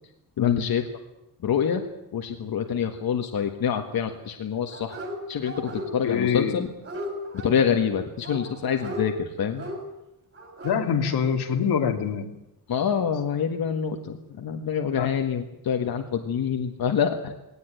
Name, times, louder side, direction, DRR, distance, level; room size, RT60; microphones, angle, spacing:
voice 1, 0.4-0.8 1.4-1.8 2.1-5.0 5.3-6.7 7.4-9.7 12.7-17.3, left 7 dB, 65° left, 4 dB, 1.8 m, -26 dB
Dog, 4.7-5.2 5.4-6.2 6.5-7.5 8.2-9.0 9.5-9.8 10.3-10.8 11.1-11.2, equal, 35° right, 6.2 m, -36 dB
voice 2, 6.0-6.6 10.6-12.3 15.0-15.1, left 7 dB, 90° left, 4 dB, 2.7 m, -24 dB
19.0 x 18.5 x 9.2 m, 0.88 s
wide cardioid pair, 140°, 39 cm